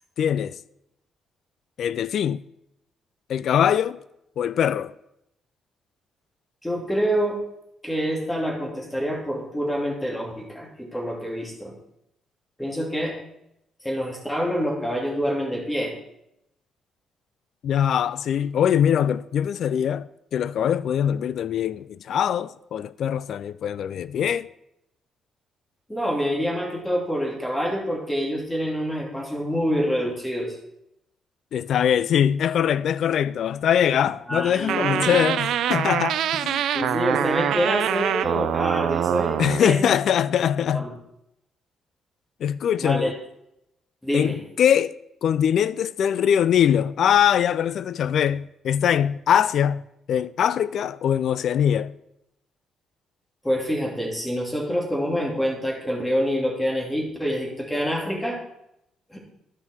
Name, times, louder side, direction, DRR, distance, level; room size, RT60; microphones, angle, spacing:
voice 1, 0.2-0.5 1.8-2.4 3.3-4.0 4.4-4.9 17.6-24.5 31.5-36.6 39.4-40.9 42.4-43.1 44.1-44.9 45.2-49.8 50.1-52.0, left 9 dB, 65° left, 0.3 m, -22 dB
voice 2, 6.6-7.4 7.8-11.7 12.6-13.1 13.8-15.9 25.9-30.5 34.3-35.3 36.7-39.9 40.7-40.9 42.8-43.1 44.0-44.4 53.4-58.4 59.1-59.2, equal, 10° left, 2.8 m, -26 dB
sound 1, 34.7-39.6, right 10 dB, 75° right, 0.4 m, -24 dB
12.5 x 5.6 x 4.6 m
cardioid pair, 90°, 0 cm